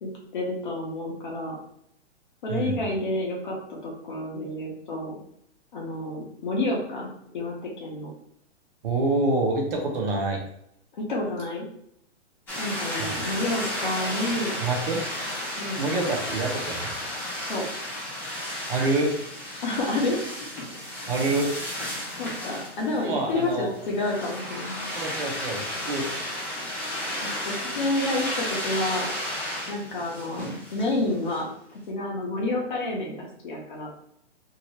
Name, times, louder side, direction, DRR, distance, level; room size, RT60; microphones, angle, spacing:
voice 1, 0.0-1.6 2.4-5.1 5.7-8.1 10.9-11.7 12.6-14.6 15.6-15.8 17.5-17.6 19.6-20.2 20.5-20.6 21.0-21.1 22.2-24.9 27.4-29.2 29.7-31.5 31.9-33.9, left 2 dB, 45° left, -1 dB, 0.9 m, -29 dB
voice 2, 8.8-10.4 13.0-13.2 14.6-15.0 15.8-16.9 18.7-19.1 21.1-21.5 23.0-23.7 24.9-26.1, right 2 dB, 50° right, 0 dB, 0.9 m, -26 dB
sound 1, 12.5-31.4, left 1 dB, 5° left, 1.0 m, -33 dB
2.9 x 2.8 x 3.1 m, 0.72 s
hypercardioid pair, 165°, 34 cm